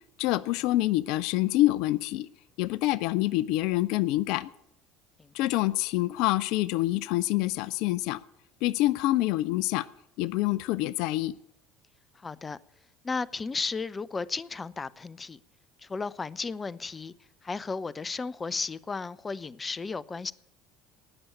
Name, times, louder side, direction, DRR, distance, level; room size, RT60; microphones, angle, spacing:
voice 1, 0.2-2.3 2.6-4.5 5.3-8.2 8.6-9.8 10.2-11.3, left 17 dB, 65° left, 0.5 m, -26 dB
voice 2, 12.2-12.6 13.0-15.4 15.8-17.1 17.4-20.3, left 4 dB, 25° left, 0.6 m, -34 dB
18.5 x 7.0 x 8.6 m
hypercardioid pair, 70°, 0 cm